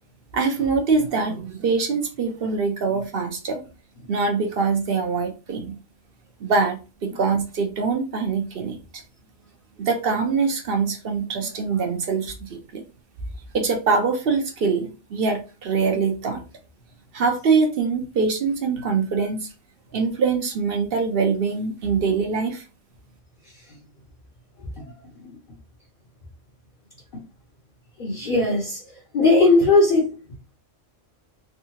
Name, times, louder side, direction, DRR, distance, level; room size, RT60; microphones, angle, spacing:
voice 1, 0.3-3.6 4.1-5.8 6.4-9.0 9.8-12.8 13.5-16.4 17.1-19.5 19.9-22.6, right 4 dB, 55° right, 0.9 m, -23 dB
voice 2, 28.0-28.8 29.1-30.1, left 3 dB, 45° left, 0.9 m, -18 dB
3.6 x 2.4 x 2.8 m
omnidirectional pair, 1.3 m